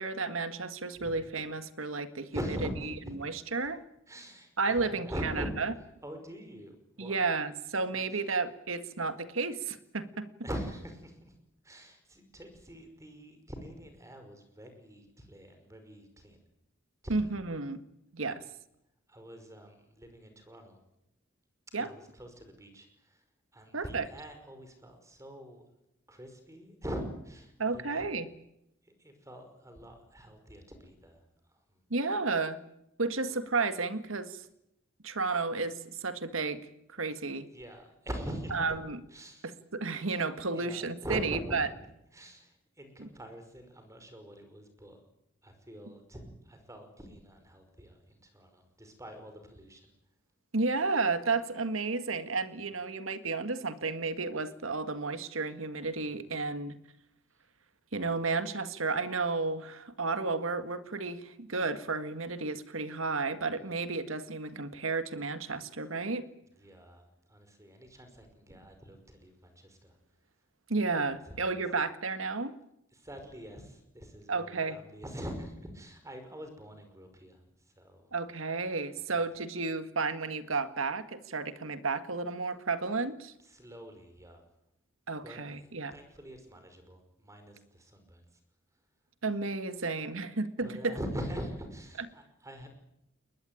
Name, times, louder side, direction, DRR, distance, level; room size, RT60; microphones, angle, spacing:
voice 1, 0.0-2.3 3.1-3.8 4.6-5.7 7.0-10.3 17.1-17.8 18.1-18.4 21.7-21.9 23.7-24.1 27.6-28.3 31.9-32.6 33.0-34.4 35.0-36.7 36.9-37.5 38.5-39.0 39.4-41.7 43.0-43.1 50.5-56.8 57.9-66.3 70.7-72.6 74.3-74.8 78.1-83.3 85.1-85.9 89.2-91.0, right 3 dB, 80° right, 11 dB, 1.8 m, -32 dB
voice 2, 2.3-2.9 4.1-5.5 6.0-7.2 8.1-8.2 10.4-11.3 11.6-16.4 17.0-17.3 19.1-20.8 21.8-23.2 23.5-25.6 26.1-28.0 29.0-31.2 37.5-38.6 39.1-39.5 40.5-41.6 42.1-45.0 45.4-49.9 63.6-63.7 66.6-67.0 67.3-69.9 71.3-71.6 72.9-77.4 77.8-78.1 83.5-84.4 85.2-88.3 90.6-92.7, equal, 15° right, 7 dB, 5.4 m, -43 dB
22.5 x 20.5 x 9.2 m, 0.83 s
head